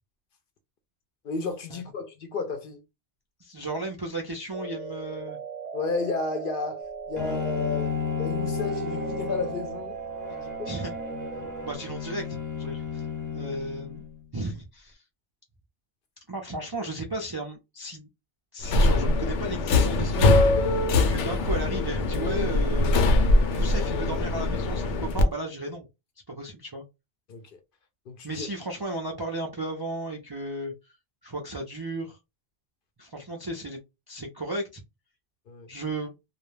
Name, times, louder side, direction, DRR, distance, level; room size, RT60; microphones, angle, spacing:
voice 1, 1.2-2.8 5.7-10.0 10.3-10.7 27.3-27.6 28.1-28.5 35.5-35.7, left 4 dB, 60° left, 0.6 m, -32 dB
voice 2, 3.4-5.4 10.7-11.0 11.6-13.1 13.3-14.0 14.3-15.0 16.3-18.1 18.5-20.3 20.6-20.7 21.1-23.0 23.5-25.9 26.3-26.8 28.2-30.7 31.2-32.2 33.0-33.8 34.1-34.8 35.7-36.1, right 2 dB, 40° right, 0.3 m, -34 dB
sound 1, 4.5-11.8, right 6 dB, 90° right, 0.9 m, -37 dB
Bowed string instrument, 7.2-14.2, left 7 dB, 20° left, 0.6 m, -33 dB
Subway metro underground, 18.6-25.2, left 2 dB, 85° left, 0.9 m, -22 dB
2.3 x 2.1 x 3.1 m
omnidirectional pair, 1.2 m